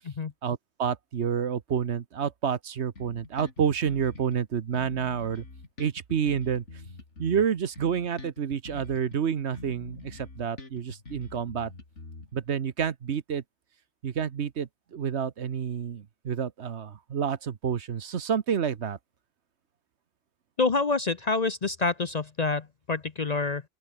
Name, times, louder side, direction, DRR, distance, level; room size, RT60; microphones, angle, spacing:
voice 1, 0.4-5.4 5.8-6.6 7.2-11.7 12.3-13.4 14.0-19.0, right 7 dB, 60° right, 1.2 m, -29 dB
Bass guitar, 2.9-4.4 4.7-9.2 9.5-12.5, left 3 dB, 65° left, 3.8 m, -45 dB
voice 2, 20.6-23.6, left 3 dB, 40° left, 0.8 m, -27 dB
open air
omnidirectional pair, 1.3 m